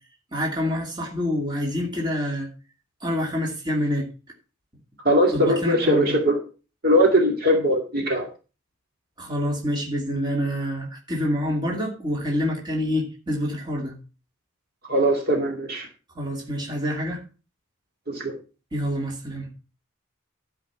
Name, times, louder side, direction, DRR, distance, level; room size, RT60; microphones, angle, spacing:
voice 1, 0.3-2.5 3.0-4.1 5.3-6.1 9.2-14.0 16.1-17.2 18.7-19.5, equal, 20° right, 2.6 m, -27 dB
voice 2, 5.0-6.4 6.8-8.3 14.9-15.9 18.1-18.4, equal, 50° right, 2.3 m, -20 dB
12.0 x 5.1 x 6.0 m
head